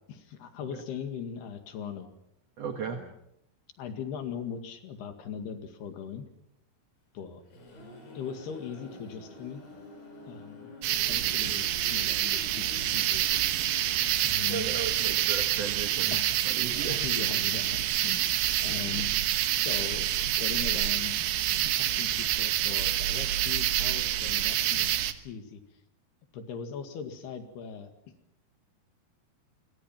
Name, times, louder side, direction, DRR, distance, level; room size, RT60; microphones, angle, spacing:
voice 1, 0.1-2.1 2.8-3.1 3.8-6.3 7.1-7.4 8.2-9.6 10.3-10.7 11.1-13.3 14.2-14.7 16.1-16.3 16.7-19.1 19.6-24.9 25.2-25.6 26.3-27.9, left 7 dB, 75° left, 7 dB, 4.1 m, -40 dB
voice 2, 2.6-3.0 14.5-16.1 16.5-17.0, right 7 dB, 55° right, 4 dB, 1.9 m, -35 dB
sound 1, 7.2-14.9, equal, 60° left, 7.6 m, -49 dB
sound 2, 10.8-25.1, right 12 dB, 85° right, 3.4 m, -27 dB
27.5 x 24.5 x 5.9 m, 0.80 s
omnidirectional pair, 4.7 m